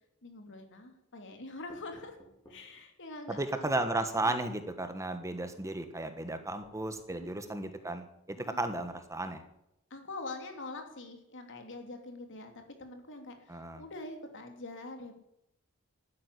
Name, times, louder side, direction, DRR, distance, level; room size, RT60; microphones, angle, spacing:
voice 1, 0.2-2.2 2.5-3.8 4.2-4.4 5.4-5.5 7.1-7.3 8.5-8.7 9.9-15.1, left 2 dB, 60° left, 5 dB, 2.9 m, -45 dB
sound 1, 1.7-2.6 3.6-3.8 4.4-4.6 5.2-5.4 6.6-7.3 8.6-9.4, equal, 20° left, 4.5 m, -58 dB
voice 2, 3.3-9.4 13.5-13.8, right 2 dB, 15° right, 8 dB, 1.2 m, -34 dB
12.5 x 9.7 x 9.9 m, 0.81 s
head